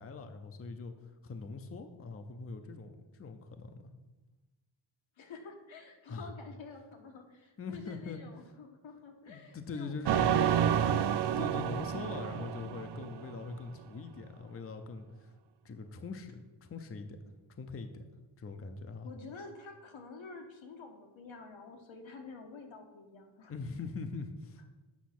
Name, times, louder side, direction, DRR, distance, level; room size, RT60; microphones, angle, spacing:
voice 1, 0.0-3.9 6.1-6.3 7.6-8.2 9.2-10.2 11.1-15.3 15.6-17.2 17.5-18.0 18.4-19.1 23.5-24.7, left 4 dB, 30° left, 7 dB, 0.6 m, -42 dB
voice 2, 5.2-11.2 19.0-23.5, left 4 dB, 85° left, 3 dB, 1.5 m, -49 dB
sound 1, 10.1-13.5, right 9 dB, 60° right, 0.5 m, -29 dB
8.3 x 6.2 x 6.0 m, 1.2 s
wide cardioid pair, 175°, 46 cm